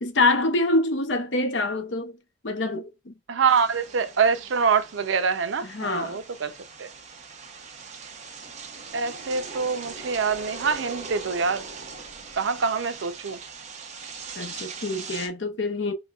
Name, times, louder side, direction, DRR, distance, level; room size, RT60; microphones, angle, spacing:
voice 1, 0.0-2.2 2.4-3.1 5.6-6.2 14.4-15.9, left 2 dB, 70° left, 0.7 m, -25 dB
voice 2, 3.3-6.5 6.8-6.9 8.9-11.7 12.3-13.4, right 5 dB, 85° right, 0.5 m, -25 dB
sound 1, 3.5-15.3, right 5 dB, 40° right, 0.8 m, -40 dB
4.9 x 2.2 x 2.3 m
head